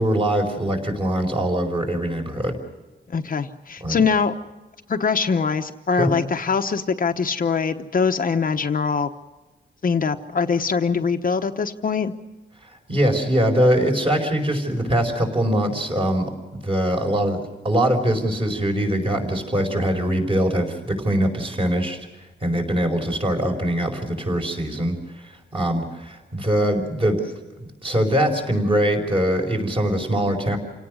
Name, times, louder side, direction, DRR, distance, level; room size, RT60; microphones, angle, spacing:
voice 1, 0.0-2.6 3.8-4.0 6.0-6.1 12.6-16.3 16.6-17.4 17.6-22.0 22.4-27.3 27.8-30.6, right 1 dB, 30° right, 2 dB, 5.0 m, -22 dB
voice 2, 3.1-4.3 4.9-9.1 9.8-12.1, left 5 dB, 50° left, 6 dB, 1.0 m, -23 dB
29.0 x 18.0 x 6.3 m, 1.2 s
wide cardioid pair, 160°, 19 cm